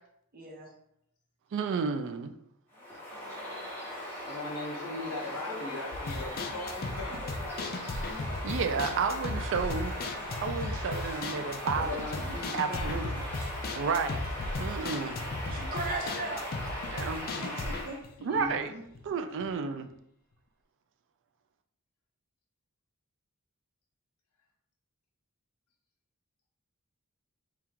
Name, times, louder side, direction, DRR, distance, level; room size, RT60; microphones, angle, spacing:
voice 1, 0.3-0.7 15.5-16.5 17.1-18.0, right 2 dB, 40° right, 0 dB, 0.9 m, -38 dB
voice 2, 1.5-2.3 8.4-9.9 10.4-13.2 13.7-14.2 14.6-15.1 16.9-17.4 18.2-18.7 19.1-19.9, right 5 dB, 60° right, 8 dB, 0.4 m, -32 dB
Bird vocalization bird call bird song, 2.7-18.0, left 1 dB, 10° left, 1.2 m, -39 dB
voice 3, 4.3-7.3 10.7-10.8 11.7-13.0 15.5-15.6 17.4-17.7 18.3-18.8, left 2 dB, 80° left, 0 dB, 1.1 m, -39 dB
sound 1, 5.9-19.1 19.4-19.5 19.9-20.0, left 2 dB, 45° left, 0.4 m, -36 dB
3.5 x 2.4 x 4.5 m, 0.73 s
head